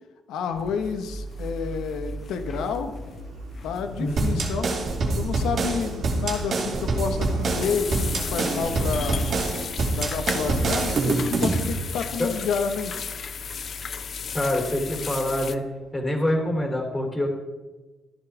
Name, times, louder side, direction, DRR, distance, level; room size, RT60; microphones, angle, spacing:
voice 1, 0.3-2.9 3.6-4.7 5.1-9.2 10.0-13.1, left 6 dB, 85° left, 7 dB, 1.3 m, -29 dB
sound 1, 0.5-15.5, left 6 dB, 50° left, 0.7 m, -36 dB
Truck, 0.5-16.7, right 4 dB, 80° right, 1.7 m, -41 dB
voice 2, 4.0-4.4 12.2-12.3 14.3-15.6 15.9-17.3, left 1 dB, 20° left, 1 dB, 3.6 m, -25 dB
sound 2, 4.2-11.7, right 3 dB, 55° right, 2.6 m, -25 dB
14.5 x 11.0 x 3.5 m, 1.2 s
cardioid pair, 90°, 0 cm